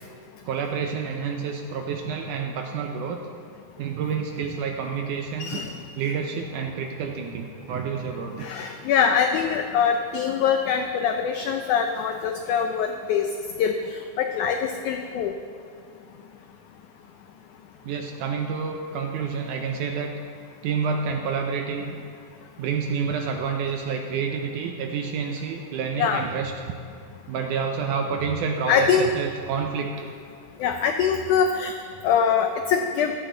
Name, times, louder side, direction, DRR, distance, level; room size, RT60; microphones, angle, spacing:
voice 1, 0.5-3.2 3.8-5.6 6.0-8.7 17.8-20.2 20.6-22.0 22.6-26.7 27.3-30.1, right 6 dB, 75° right, 3 dB, 1.9 m, -29 dB
voice 2, 5.4-5.8 8.4-13.3 13.6-15.3 26.0-26.2 28.7-29.1 30.6-31.8 32.0-33.1, left 7 dB, 90° left, 5 dB, 1.7 m, -23 dB
15.5 x 13.0 x 3.9 m, 2.3 s
omnidirectional pair, 4.3 m